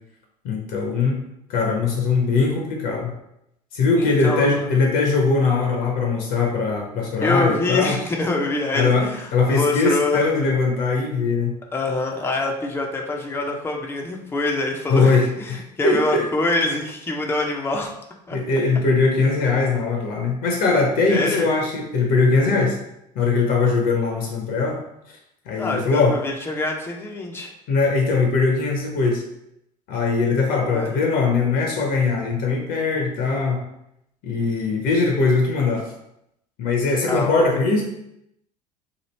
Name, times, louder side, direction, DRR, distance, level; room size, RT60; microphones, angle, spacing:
voice 1, 0.4-1.2 1.5-3.1 3.7-7.9 8.7-9.1 9.3-11.5 14.9-16.2 18.3-22.8 23.2-24.8 25.5-26.2 27.7-29.2 29.9-33.6 34.2-35.9 36.6-37.8, left 4 dB, 45° left, 1 dB, 0.7 m, -20 dB
voice 2, 4.0-4.7 7.2-10.2 11.7-17.9 18.3-18.4 21.1-21.5 25.5-27.5 30.7-30.9 37.1-37.6, left 2 dB, 10° left, 1 dB, 0.6 m, -25 dB
3.0 x 2.7 x 4.1 m, 0.81 s
figure-of-eight pair, 65°, 21 cm